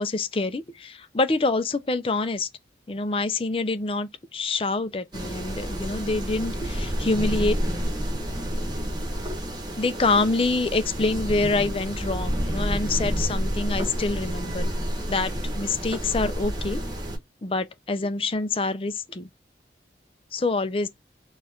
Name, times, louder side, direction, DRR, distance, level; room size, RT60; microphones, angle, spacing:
voice 1, 0.0-2.5 2.9-7.9 9.8-14.7 15.1-16.8 17.4-19.3 20.3-20.9, left 3 dB, 30° left, 0.5 m, -26 dB
sound 1, 5.1-17.2, equal, 25° right, 1.3 m, -29 dB
4.5 x 2.4 x 4.3 m
head